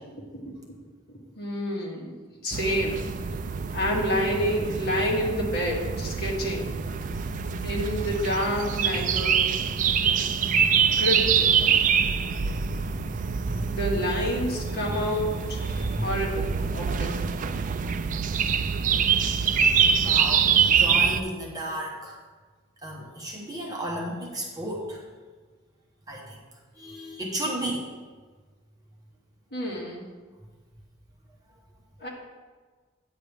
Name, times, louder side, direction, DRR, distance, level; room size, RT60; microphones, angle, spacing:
voice 1, 1.1-2.2 2.4-3.1 3.7-6.8 7.6-9.6 11.0-11.6 13.7-15.6 16.0-17.4 29.5-30.0 32.0-32.1, equal, 50° left, -3 dB, 1.9 m, -28 dB
sound 1, 2.5-21.2, right 6 dB, 40° right, 0.3 m, -25 dB
voice 2, 13.0-13.7 14.9-15.1 15.7-16.1 20.0-22.2 22.8-25.0 26.1-26.4 26.8-27.9, right 1 dB, 20° right, -2 dB, 1.1 m, -34 dB
9.4 x 8.4 x 3.4 m, 1.4 s
head